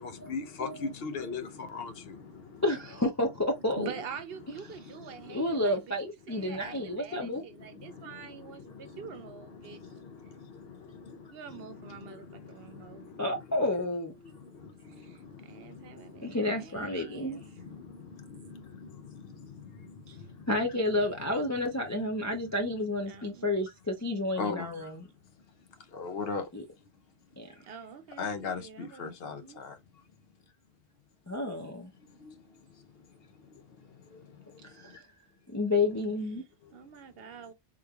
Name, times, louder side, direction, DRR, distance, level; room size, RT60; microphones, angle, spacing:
voice 1, 0.0-2.6 4.7-5.5 6.3-7.3 7.6-13.4 14.2-16.5 17.0-20.5 24.4-24.9 25.9-26.5 28.2-29.8 32.1-35.0 36.6-36.7, left 5 dB, 65° left, 0.8 m, -42 dB
voice 2, 2.6-3.9 5.3-7.4 13.2-14.1 16.2-17.4 20.1-20.2 20.5-25.1 26.5-26.6 27.4-27.5 31.3-31.9 34.7-35.0 35.5-36.4, left 2 dB, 30° left, 0.3 m, -30 dB
voice 3, 3.8-9.8 11.3-13.1 15.0-17.4 23.1-23.5 27.6-29.6 36.7-37.5, right 6 dB, 65° right, 0.8 m, -46 dB
3.7 x 3.0 x 2.2 m
omnidirectional pair, 1.1 m